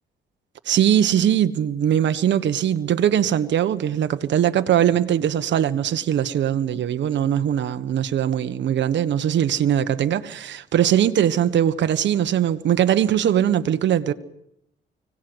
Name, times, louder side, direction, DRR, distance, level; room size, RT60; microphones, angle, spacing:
voice 1, 0.7-14.1, right 10 dB, 65° right, 1.4 m, -21 dB
25.0 x 18.0 x 8.0 m
cardioid pair, 90°, 20 cm